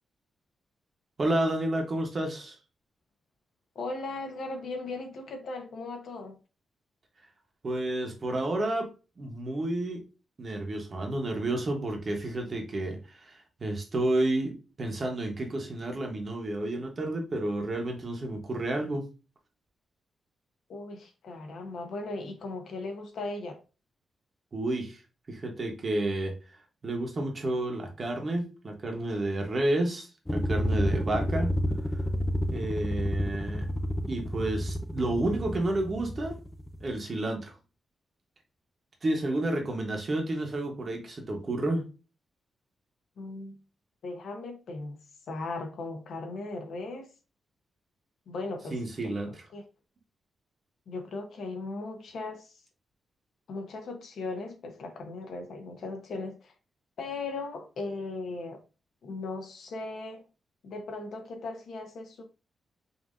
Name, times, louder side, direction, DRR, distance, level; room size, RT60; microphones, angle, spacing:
voice 1, 1.2-2.6 7.6-8.9 9.2-10.0 10.4-19.0 24.5-25.0 25.3-26.3 26.8-31.5 32.5-33.7 34.1-36.4 36.8-37.5 39.0-41.9 48.7-49.4, right 1 dB, 35° right, 1.0 m, -30 dB
voice 2, 3.7-6.4 20.7-23.6 43.2-43.6 44.0-45.0 45.3-47.1 48.3-49.1 49.5-49.6 50.9-52.6 53.5-56.5 57.0-58.6 59.0-60.2 60.6-62.2, left 3 dB, 70° left, 1.0 m, -37 dB
sound 1, 30.3-37.0, equal, 10° left, 0.3 m, -30 dB
5.5 x 2.7 x 2.5 m
wide cardioid pair, 170°, 0 cm